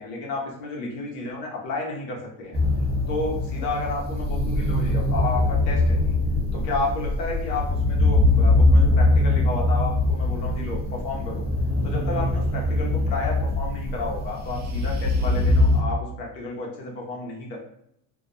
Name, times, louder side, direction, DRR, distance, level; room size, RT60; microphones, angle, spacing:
voice 1, 0.0-2.6 3.1-6.1 6.5-11.4 11.8-17.6, left 3 dB, 85° left, -2 dB, 1.0 m, -31 dB
sound 1, 2.5-15.8, left 2 dB, 25° right, 0.3 m, -22 dB
2.6 x 2.1 x 2.5 m, 0.75 s
supercardioid pair, 110°, 48 cm